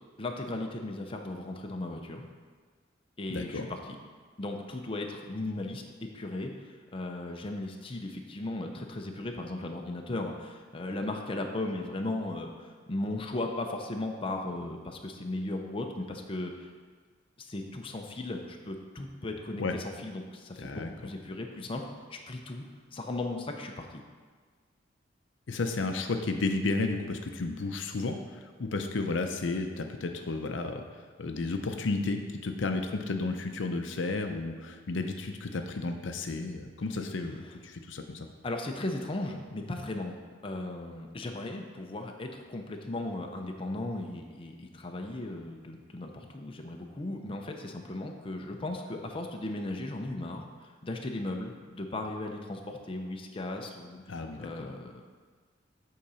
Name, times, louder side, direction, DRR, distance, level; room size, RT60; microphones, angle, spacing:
voice 1, 0.2-2.2 3.2-4.0 4.4-16.7 17.4-24.0 38.4-55.0, left 2 dB, 30° left, 2 dB, 0.6 m, -37 dB
voice 2, 3.3-3.7 19.6-19.7 20.6-20.9 25.5-28.2 28.6-30.8 31.2-38.3 54.1-54.7, left 3 dB, 70° left, 5 dB, 0.6 m, -32 dB
8.5 x 3.8 x 5.5 m, 1.5 s
head